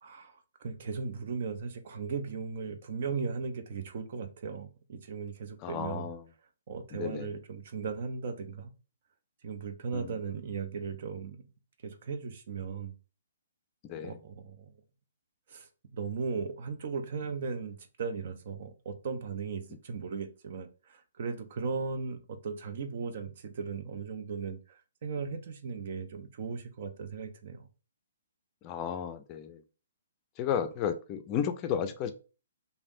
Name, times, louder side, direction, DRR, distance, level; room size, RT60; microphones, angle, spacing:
voice 1, 0.0-6.1 6.7-8.7 9.4-11.4 11.8-12.9 13.9-14.7 15.5-27.7, right 5 dB, 50° right, 0.5 m, -37 dB
voice 2, 5.6-6.2 6.9-7.3 9.9-10.1 13.8-14.2 28.6-29.6 30.4-32.1, left 8 dB, 30° left, 0.4 m, -33 dB
3.3 x 2.7 x 2.5 m
figure-of-eight pair, 130°, 0 cm